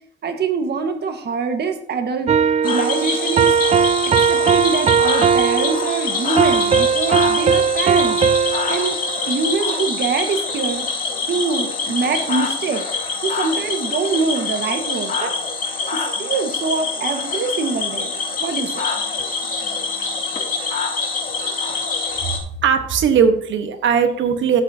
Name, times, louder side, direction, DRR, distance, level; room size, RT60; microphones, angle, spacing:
voice 1, 0.2-2.3 2.6-3.5 4.3-8.2 8.7-9.0 9.3-10.9 11.3-12.8 13.2-15.3 15.9-18.1 18.4-18.8, right 5 dB, 55° right, 6 dB, 1.6 m, -24 dB
sound 1, 2.3-9.6, right 6 dB, 35° right, 0.4 m, -18 dB
Cricket / Frog, 2.6-22.4, left 4 dB, 45° left, 2.5 m, -25 dB
voice 2, 22.6-24.6, right 7 dB, 75° right, 8 dB, 1.3 m, -18 dB
12.0 x 8.0 x 2.8 m, 0.64 s
cardioid pair, 90°, 20 cm